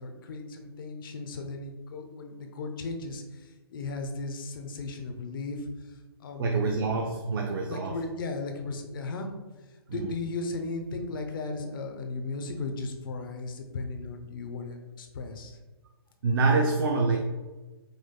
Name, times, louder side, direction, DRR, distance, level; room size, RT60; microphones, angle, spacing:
voice 1, 0.0-5.7 6.2-6.7 7.7-9.3 9.9-15.6, left 3 dB, 55° left, 4 dB, 0.7 m, -36 dB
voice 2, 6.4-8.0 9.9-10.1 16.2-17.2, right 3 dB, 60° right, 2 dB, 0.5 m, -26 dB
5.0 x 3.8 x 2.2 m, 1.2 s
hypercardioid pair, 135°, 13 cm